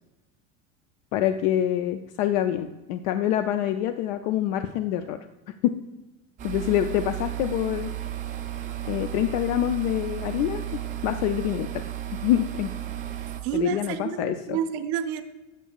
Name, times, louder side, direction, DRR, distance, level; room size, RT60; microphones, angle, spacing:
voice 1, 1.1-5.2 5.6-5.7 6.4-7.9 8.9-10.6 11.0-11.8 12.2-12.7 13.5-14.6, left 12 dB, 85° left, 9 dB, 0.5 m, -26 dB
sound 1, 6.4-13.4, right 12 dB, 25° right, 0.3 m, -34 dB
voice 2, 13.4-15.2, right 9 dB, 65° right, 8 dB, 0.6 m, -29 dB
8.2 x 7.9 x 2.3 m, 1.1 s
cardioid pair, 170°, 34 cm